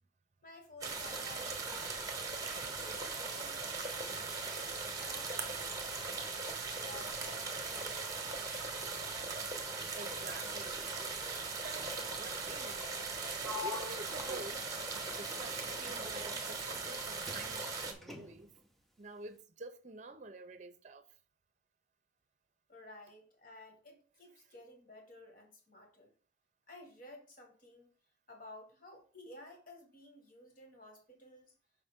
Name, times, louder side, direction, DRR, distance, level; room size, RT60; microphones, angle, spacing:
voice 1, 0.4-2.0 2.4-3.6 4.0-6.5 6.8-8.6 22.7-26.1 26.7-27.9 28.3-31.5, left 1 dB, 50° left, 1.7 m, -54 dB
sound 1, 0.8-17.9, right 4 dB, 20° right, 1.1 m, -39 dB
voice 2, 10.0-10.8 11.6-13.0 13.4-14.7 15.1-18.5 19.0-21.0, right 2 dB, 40° right, 0.6 m, -48 dB
Sliding door, 13.4-17.0 17.3-18.6, left 3 dB, ahead, 0.7 m, -46 dB
6.0 x 5.4 x 3.6 m
head